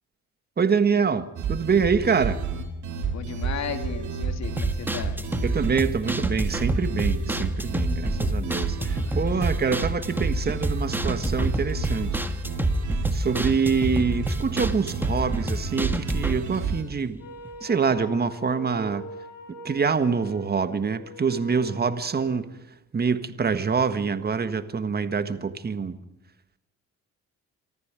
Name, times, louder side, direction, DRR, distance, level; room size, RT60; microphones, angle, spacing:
voice 1, 0.6-2.4 5.4-12.2 13.1-17.2 17.6-19.0 19.6-22.5 22.9-26.0, right 5 dB, 30° right, 11 dB, 1.6 m, -25 dB
sound 1, 1.4-16.8, right 4 dB, 75° right, 4.2 m, -30 dB
voice 2, 3.1-5.2 8.7-9.3, left 7 dB, 65° left, 6 dB, 2.8 m, -35 dB
sound 2, 4.4-17.6 17.9-18.0 18.4-18.5, equal, 5° right, 1.6 m, -29 dB
Wind instrument woodwind instrument, 17.2-22.4, equal, 90° left, 5.1 m, -42 dB
25.0 x 14.0 x 8.9 m, 0.90 s
cardioid pair, 90°, 30 cm